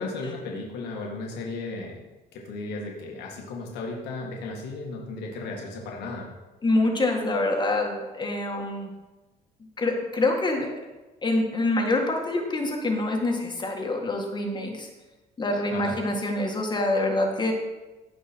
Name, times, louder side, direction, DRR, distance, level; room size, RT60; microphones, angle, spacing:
voice 1, 0.0-2.0 2.3-6.3 15.7-16.0, left 3 dB, 80° left, -1 dB, 2.1 m, -35 dB
voice 2, 6.6-8.9 9.8-10.7 11.2-14.9 15.4-17.5, left 2 dB, 25° left, 2 dB, 1.8 m, -26 dB
16.0 x 5.4 x 4.5 m, 1.1 s
cardioid pair, 110°, 17 cm